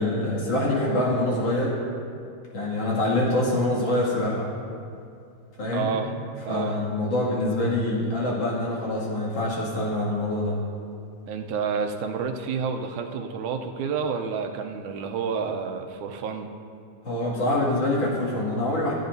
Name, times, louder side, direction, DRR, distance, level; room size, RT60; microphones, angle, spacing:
voice 1, 0.0-1.8 2.5-4.5 5.6-5.9 6.5-10.6 17.0-18.9, left 1 dB, 55° left, -6 dB, 3.3 m, -25 dB
voice 2, 5.7-6.1 6.4-6.8 11.3-16.5, right 6 dB, 90° right, 4 dB, 2.2 m, -29 dB
21.0 x 11.5 x 2.7 m, 2.5 s
omnidirectional pair, 3.4 m